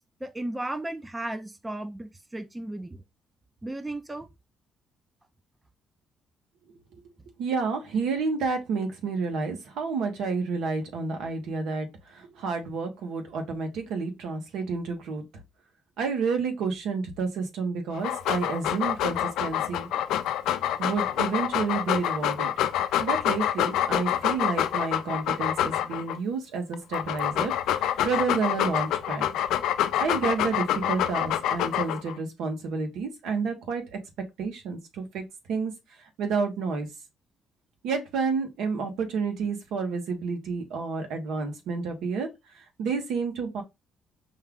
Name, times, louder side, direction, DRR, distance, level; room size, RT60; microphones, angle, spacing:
voice 1, 0.2-3.0 3.6-4.3, right 1 dB, 10° right, 0.5 m, -35 dB
voice 2, 7.4-15.2 16.0-19.9 20.8-22.7 23.0-29.3 30.0-34.0 34.4-35.2 35.5-35.7 36.0-36.9 37.8-42.3 42.5-43.6, right 4 dB, 80° right, 1.2 m, -30 dB
Dog, 17.9-26.2 26.7-32.1, left 11 dB, 85° left, 0.4 m, -27 dB
5.4 x 2.3 x 3.6 m
cardioid pair, 110°, 0 cm